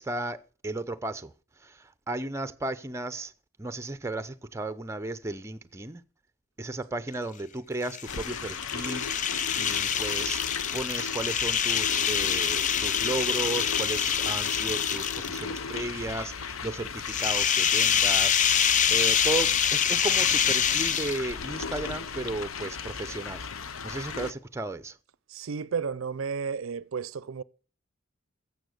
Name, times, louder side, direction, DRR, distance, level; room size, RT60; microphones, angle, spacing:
voice 1, 0.0-1.3 1.6-3.3 3.6-6.0 6.6-9.1 9.6-18.5 18.9-23.4 23.8-25.0, right 2 dB, 15° right, 0.6 m, -34 dB
sound 1, 7.8-15.6 17.0-21.5, left 8 dB, 40° left, 0.5 m, -26 dB
sound 2, 8.1-24.3, left 5 dB, 80° left, 0.8 m, -37 dB
voice 2, 25.3-27.4, right 5 dB, 75° right, 0.5 m, -32 dB
15.5 x 7.1 x 6.6 m
head